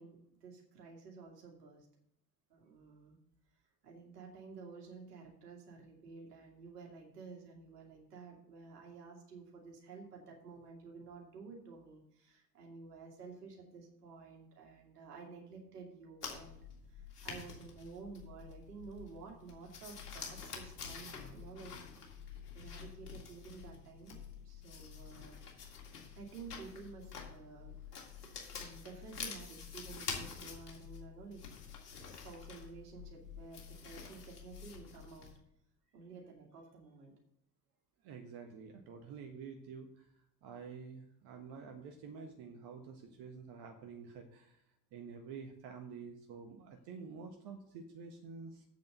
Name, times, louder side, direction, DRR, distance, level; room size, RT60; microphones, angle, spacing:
voice 1, 0.0-1.9 2.5-3.2 3.8-21.7 22.5-25.4 26.1-28.1 28.6-31.4 31.8-35.3 35.9-37.1, right 4 dB, 80° right, 0 dB, 2.6 m, -52 dB
sound 1, 16.2-35.4, left 6 dB, 80° left, 2.1 m, -48 dB
voice 2, 38.0-40.1 40.4-44.6 44.9-48.6, right 5 dB, 55° right, 4 dB, 1.5 m, -49 dB
8.3 x 6.8 x 6.8 m, 0.74 s
figure-of-eight pair, 65°, 46 cm